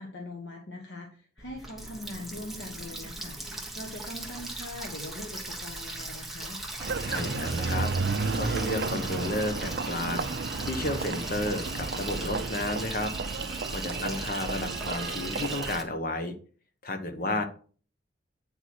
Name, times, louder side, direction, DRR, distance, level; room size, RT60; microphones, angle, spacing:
voice 1, 0.0-6.6 13.9-14.2 17.2-17.4, left 1 dB, 70° left, 1 dB, 1.3 m, -42 dB
Water tap faucet, 1.4-15.8, right 1 dB, ahead, 1.0 m, -39 dB
Engine, 6.8-15.8, right 4 dB, 60° right, 0.5 m, -32 dB
voice 2, 7.0-7.9 8.3-13.1 13.7-16.3 16.8-17.4, left 1 dB, 50° left, 6 dB, 1.1 m, -32 dB
8.7 x 4.7 x 4.3 m, 0.41 s
head